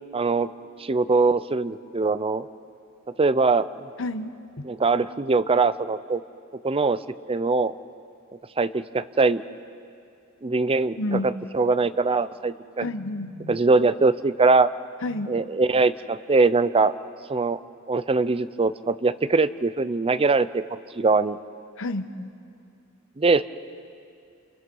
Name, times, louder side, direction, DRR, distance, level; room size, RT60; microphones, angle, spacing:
voice 1, 0.1-0.5 0.8-2.4 3.2-3.9 4.6-6.2 6.6-7.0 7.3-7.7 8.6-9.4 10.4-12.9 13.5-14.7 15.3-16.9 17.3-17.6 17.9-20.6 20.9-21.4 23.2-23.4, right 3 dB, 25° right, 14 dB, 0.5 m, -22 dB
voice 2, 4.0-4.3 11.0-11.3 12.8-13.6 15.0-15.3 21.8-22.3, left 2 dB, 65° left, 10 dB, 1.1 m, -30 dB
29.0 x 29.0 x 5.4 m, 2.5 s
head